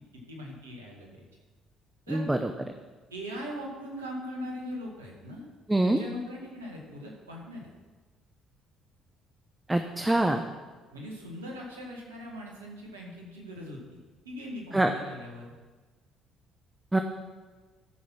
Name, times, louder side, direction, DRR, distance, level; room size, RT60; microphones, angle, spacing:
voice 1, 0.1-1.2 2.1-2.2 3.1-5.5 5.8-7.7 10.9-15.5, equal, 90° right, -1 dB, 1.9 m, -40 dB
voice 2, 2.1-2.5 5.7-6.0 9.7-10.4 14.7-14.9 16.9-17.0, right 1 dB, 15° right, 6 dB, 0.8 m, -24 dB
13.5 x 6.3 x 5.8 m, 1.3 s
hypercardioid pair, 50°, 0 cm